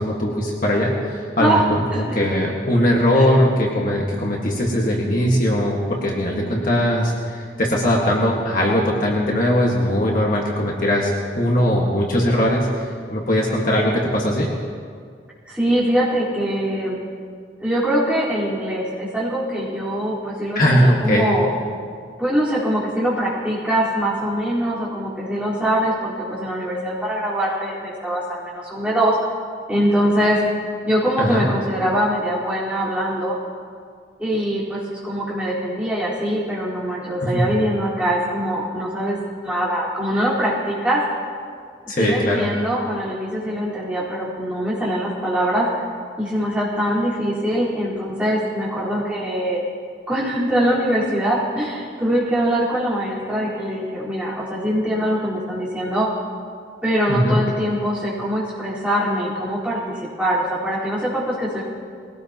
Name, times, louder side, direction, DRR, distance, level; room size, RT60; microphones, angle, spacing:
voice 1, 0.0-1.6 2.0-14.5 20.5-21.3 31.2-31.5 37.2-37.4 41.9-42.5 57.1-57.4, equal, 45° left, -2 dB, 1.7 m, -20 dB
voice 2, 15.5-17.0 17.6-21.5 22.2-29.2 29.7-30.4 30.8-33.4 34.2-39.2 39.4-41.0 42.0-45.7 46.2-49.6 50.1-56.1 56.8-61.6, equal, 5° right, -9 dB, 4.3 m, -23 dB
21.0 x 18.0 x 3.0 m, 2.1 s
head